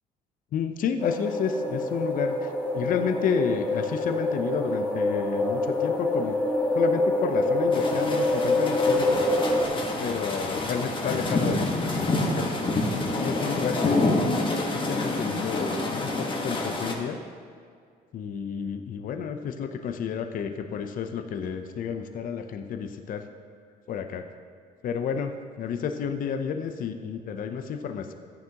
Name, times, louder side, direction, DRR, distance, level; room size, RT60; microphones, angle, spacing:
voice 1, 0.5-6.4 6.7-9.2 10.0-12.6 13.2-17.2 18.1-23.2 23.9-24.2 24.8-28.1, left 6 dB, 55° left, 7 dB, 0.6 m, -31 dB
sound 1, 1.0-9.7, left 2 dB, 10° left, 1.4 m, -26 dB
sound 2, 7.7-16.9, left 2 dB, 30° left, 1.3 m, -28 dB
13.5 x 9.4 x 2.9 m, 2.1 s
cardioid pair, 110°, 17 cm